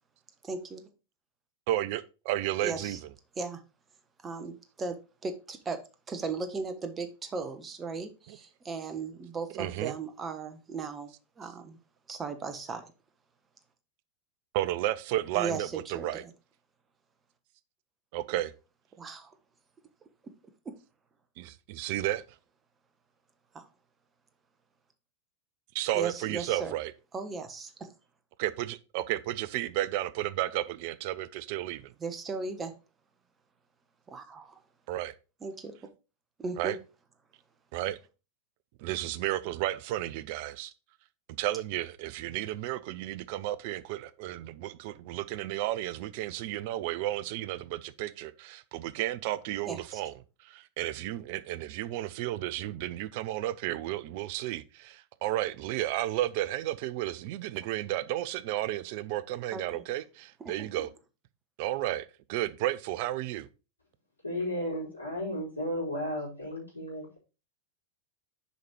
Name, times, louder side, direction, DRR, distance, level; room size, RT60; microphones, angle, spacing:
voice 1, 0.4-0.8 2.6-3.0 3.4-3.6 4.2-5.8 6.1-11.1 11.4-11.8 12.1-12.9 15.3-16.3 19.0-19.3 20.2-20.3 20.6-20.7 23.5-23.7 25.9-26.7 27.1-27.9 32.0-32.7 34.1-34.6 35.4-35.8 36.4-36.8 49.7-50.0 59.5-59.6 60.4-60.9, right 4 dB, 20° right, 1.1 m, -37 dB
voice 2, 1.7-3.0 8.3-8.4 9.5-10.0 14.5-16.2 18.1-18.5 21.4-22.2 25.7-26.9 28.4-31.9 34.9-35.1 36.6-36.8 37.7-38.0 38.8-40.7 41.4-50.1 50.4-60.9 61.6-63.5, right 14 dB, 45° right, 0.6 m, -33 dB
voice 3, 64.2-67.2, equal, 80° left, 4.2 m, -34 dB
6.6 x 5.3 x 4.5 m
figure-of-eight pair, 90°, 0 cm